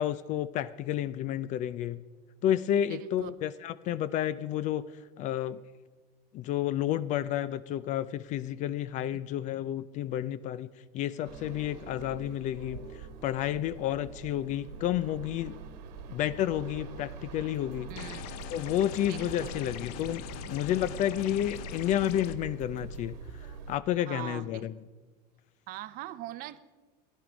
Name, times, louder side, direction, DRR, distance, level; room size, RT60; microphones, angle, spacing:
voice 1, 0.0-2.0 2.4-4.9 5.2-5.6 6.3-15.6 16.1-17.9 18.5-23.2 23.7-24.7, left 11 dB, 35° left, 17 dB, 0.4 m, -31 dB
voice 2, 2.9-3.3 9.1-9.2 17.9-18.2 19.0-19.5 24.1-24.7 25.7-26.6, right 14 dB, 45° right, 14 dB, 0.6 m, -41 dB
sound 1, 11.2-23.8, right 5 dB, 85° right, 1.5 m, -45 dB
sound 2, 17.5-23.1, left 3 dB, 55° left, 2.3 m, -61 dB
sound 3, 18.0-22.4, left 11 dB, 75° left, 0.7 m, -42 dB
16.0 x 11.0 x 5.0 m, 1.3 s
supercardioid pair, 140°, 21 cm